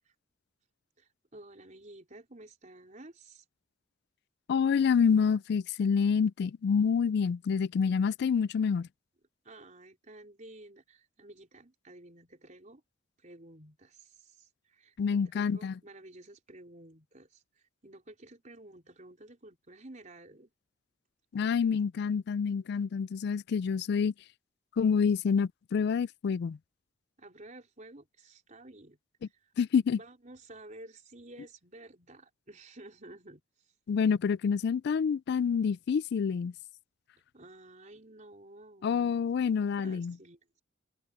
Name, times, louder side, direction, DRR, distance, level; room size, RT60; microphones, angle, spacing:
voice 1, 1.0-3.4 9.4-12.8 13.2-20.5 21.4-21.8 27.2-29.5 29.9-33.7 37.3-40.6, right 2 dB, 40° right, 4.2 m, -52 dB
voice 2, 4.5-8.9 15.0-15.8 21.3-24.1 24.8-26.6 29.6-30.0 33.9-36.5 38.8-40.1, left 6 dB, 60° left, 0.3 m, -27 dB
head